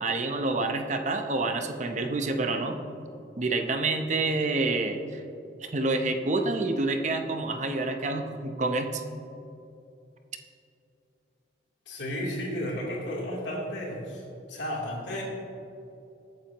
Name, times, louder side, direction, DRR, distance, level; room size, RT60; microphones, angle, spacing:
voice 1, 0.0-3.0 3.4-5.2 5.6-9.0, right 2 dB, 40° right, 5 dB, 0.8 m, -28 dB
voice 2, 11.9-14.2 14.5-15.2, equal, 70° left, -4 dB, 3.3 m, -33 dB
21.0 x 9.0 x 3.0 m, 2.7 s
head